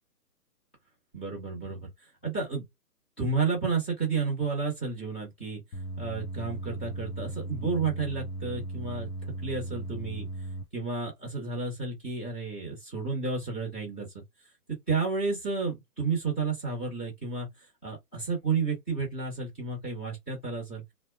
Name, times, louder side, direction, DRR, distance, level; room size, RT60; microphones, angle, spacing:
voice 1, 1.1-1.9 2.2-2.6 3.2-5.6 6.0-9.1 9.4-10.3 10.7-14.2 14.7-17.5 17.8-20.8, right 4 dB, 5° left, 0.6 m, -31 dB
sound 1, 5.7-10.6, right 2 dB, 70° left, 0.7 m, -37 dB
3.1 x 2.0 x 2.5 m
hypercardioid pair, 165°, 47 cm